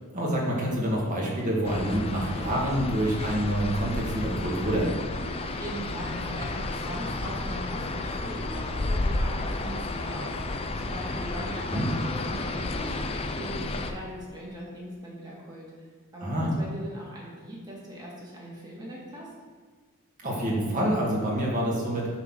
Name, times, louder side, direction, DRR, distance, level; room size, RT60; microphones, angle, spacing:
voice 1, 0.1-4.9 11.7-11.9 16.2-16.5 20.2-22.1, equal, 35° right, -4 dB, 2.0 m, -27 dB
sound 1, 1.6-13.9, left 2 dB, 25° left, 0.5 m, -32 dB
voice 2, 5.2-19.3, right 1 dB, 20° right, -5 dB, 2.1 m, -40 dB
9.6 x 4.0 x 6.2 m, 1.5 s
head